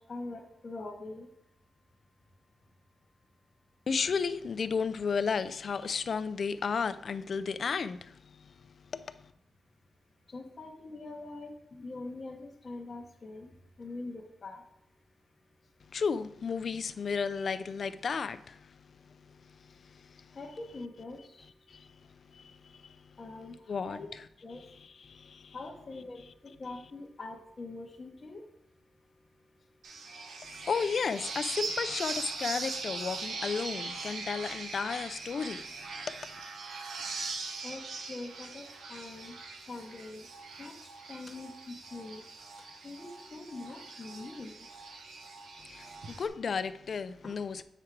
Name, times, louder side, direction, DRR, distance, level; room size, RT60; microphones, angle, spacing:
voice 1, 0.1-1.3 10.3-13.5 13.8-14.6 20.4-21.4 23.2-23.5 23.9-24.1 24.4-24.6 25.5-26.2 26.6-28.4 37.6-37.8 38.1-38.6 38.9-39.3 39.7-40.3 40.6-40.7 41.1-42.2 42.8-44.5, left 2 dB, 30° left, 0.8 m, -43 dB
voice 2, 3.9-9.3 15.9-20.4 21.7-23.2 23.7-24.0 24.8-25.6 30.4-36.4 45.6-47.6, left 5 dB, 45° left, 0.3 m, -34 dB
sound 1, 29.8-46.3, right 4 dB, 75° right, 0.9 m, -41 dB
7.8 x 4.9 x 4.5 m
wide cardioid pair, 160°, 0 cm